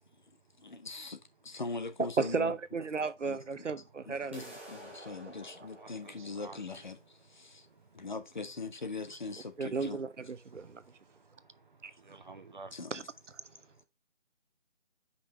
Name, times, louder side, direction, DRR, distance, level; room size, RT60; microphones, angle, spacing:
voice 1, 0.6-2.6 3.2-3.6 4.1-7.7 7.9-10.0 12.7-13.1, left 3 dB, 40° left, 0.9 m, -41 dB
voice 2, 2.2-4.4 9.6-10.8 12.9-13.0, right 4 dB, 85° right, 0.9 m, -34 dB
sound 1, 4.3-10.3, right 1 dB, 10° right, 0.8 m, -53 dB
voice 3, 5.8-6.8 7.4-8.1 10.5-11.2 12.0-12.7 13.5-13.7, right 3 dB, 40° right, 1.1 m, -52 dB
5.6 x 5.0 x 5.5 m
figure-of-eight pair, 165°, 36 cm